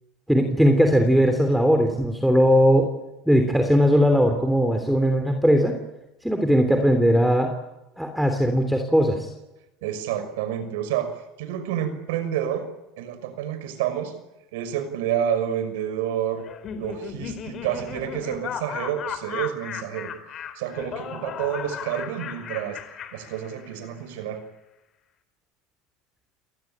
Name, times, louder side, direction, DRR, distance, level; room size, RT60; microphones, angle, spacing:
voice 1, 0.3-2.9 3.3-5.7 6.2-7.5 8.0-9.3, equal, ahead, 6 dB, 3.3 m, -19 dB
voice 2, 9.8-14.1 14.5-16.5 16.8-20.1 20.6-22.8 23.1-24.4, right 9 dB, 85° right, 11 dB, 5.9 m, -29 dB
Laughter, 16.4-23.9, left 8 dB, 40° left, 3.7 m, -36 dB
29.5 x 19.5 x 9.0 m, 0.97 s
supercardioid pair, 120°, 0 cm